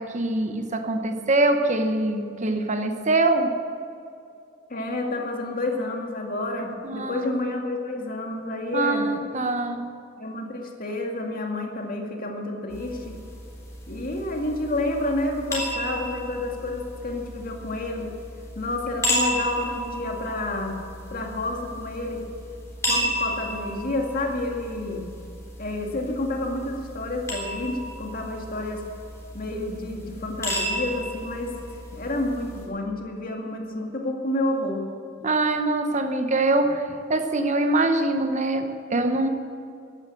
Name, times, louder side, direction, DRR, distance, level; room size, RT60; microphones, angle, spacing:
voice 1, 0.0-3.6 6.8-7.3 8.7-10.0 35.2-39.3, right 2 dB, 40° right, 7 dB, 1.0 m, -24 dB
voice 2, 4.7-9.1 10.2-13.2 13.9-18.1 18.6-20.8 21.1-22.2 22.9-25.0 25.6-28.8 29.3-31.6 31.9-34.8, left 2 dB, 50° left, 1 dB, 2.1 m, -29 dB
sound 1, 12.7-32.7, equal, 15° left, 3.8 m, -33 dB
14.0 x 10.5 x 7.8 m, 2.5 s
head